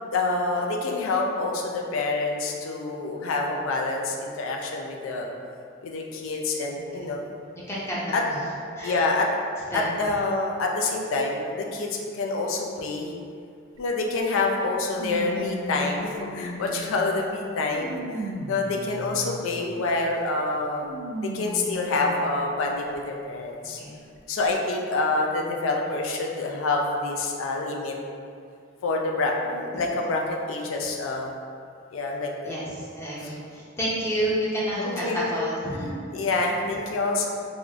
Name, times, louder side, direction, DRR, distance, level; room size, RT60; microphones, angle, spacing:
voice 1, 0.1-5.3 5.8-7.2 8.1-8.2 8.8-9.3 9.7-13.1 13.8-20.9 21.2-23.8 24.3-28.0 28.8-31.3 31.9-32.5 33.2-33.3 34.8-35.3 36.1-37.3, left 3 dB, 75° left, 0 dB, 0.4 m, -27 dB
voice 2, 6.7-7.1 7.7-8.4 8.8-9.0 9.7-9.8 23.8-23.9 32.4-36.0, right 1 dB, 15° left, -7 dB, 0.6 m, -30 dB
sound 1, 13.8-13.9 15.0-17.0 17.6-19.6 20.8-22.2 22.9-23.0 24.2-24.3, right 1 dB, 80° right, 0.4 m, -36 dB
3.4 x 2.5 x 2.3 m, 2.4 s
head